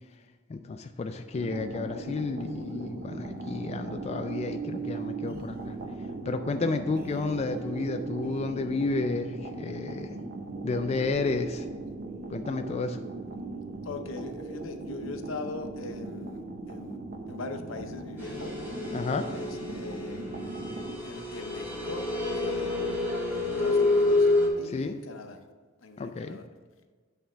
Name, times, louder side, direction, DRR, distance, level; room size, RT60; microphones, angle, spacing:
voice 1, 0.5-5.6 6.3-10.1 10.6-11.7 12.3-13.0 18.9-19.3 24.6-25.0 26.0-26.4, left 3 dB, 30° left, 6 dB, 0.3 m, -31 dB
sound 1, 1.3-21.0, right 3 dB, 45° right, 0.8 m, -38 dB
voice 2, 13.8-17.0 17.3-18.5 19.3-20.2 21.0-22.0 22.3-23.1 23.3-24.3 24.6-25.4 25.8-26.4, left 3 dB, 80° left, 7 dB, 0.7 m, -41 dB
sound 2, 18.2-24.5, left 2 dB, 10° right, 1.6 m, -28 dB
8.7 x 3.4 x 6.2 m, 1.4 s
head